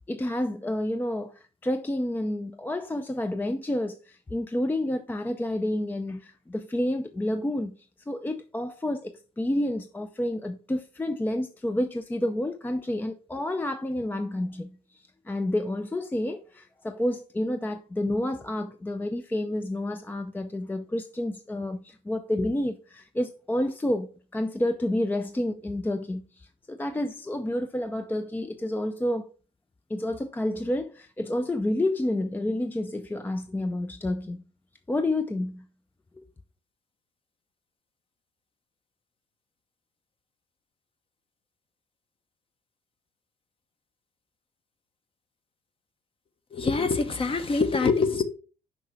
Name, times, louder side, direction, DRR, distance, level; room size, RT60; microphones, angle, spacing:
voice 1, 0.1-7.8 8.1-29.3 29.9-34.4 34.9-35.7 36.2-36.3, left 1 dB, 10° left, 0.5 m, -29 dB
voice 2, 46.5-48.2, left 4 dB, 35° left, 1.1 m, -24 dB
6.1 x 5.6 x 4.7 m
cardioid pair, 110°, 17 cm